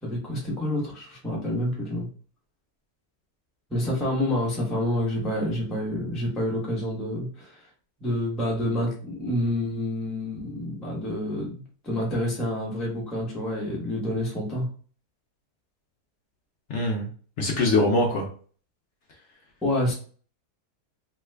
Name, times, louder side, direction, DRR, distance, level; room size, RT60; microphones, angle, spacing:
voice 1, 0.0-2.1 3.7-7.6 8.0-14.7 19.6-19.9, left 1 dB, ahead, -4 dB, 0.6 m, -28 dB
voice 2, 16.7-17.1 17.4-18.3, left 2 dB, 75° left, 0 dB, 0.6 m, -23 dB
3.0 x 2.3 x 3.2 m, 0.42 s
omnidirectional pair, 1.9 m